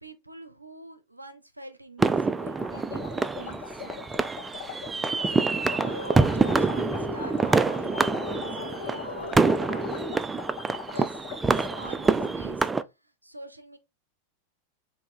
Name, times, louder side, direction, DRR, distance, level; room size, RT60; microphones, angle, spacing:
voice 1, 0.0-4.1 5.1-9.9 10.9-11.2 11.7-12.7 13.2-13.8, right 1 dB, 85° right, 0.6 m, -45 dB
sound 1, 2.0-12.8, right 4 dB, 15° right, 0.3 m, -26 dB
sound 2, 2.4-12.3, left 8 dB, 50° left, 1.1 m, -42 dB
sound 3, 5.6-10.5, left 8 dB, 70° left, 0.6 m, -40 dB
5.4 x 2.7 x 3.5 m
figure-of-eight pair, 90°, 0 cm